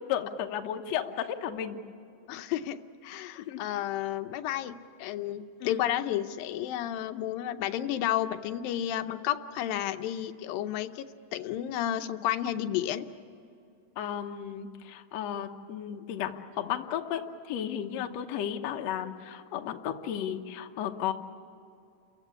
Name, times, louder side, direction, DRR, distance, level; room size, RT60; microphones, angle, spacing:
voice 1, 0.1-1.8 3.4-3.6 5.6-5.8 14.0-21.1, left 9 dB, 65° left, 4 dB, 1.9 m, -34 dB
voice 2, 2.3-2.8 3.0-11.1 11.3-13.0, left 12 dB, 90° left, 8 dB, 2.6 m, -31 dB
29.5 x 15.0 x 8.4 m, 2.6 s
omnidirectional pair, 4.0 m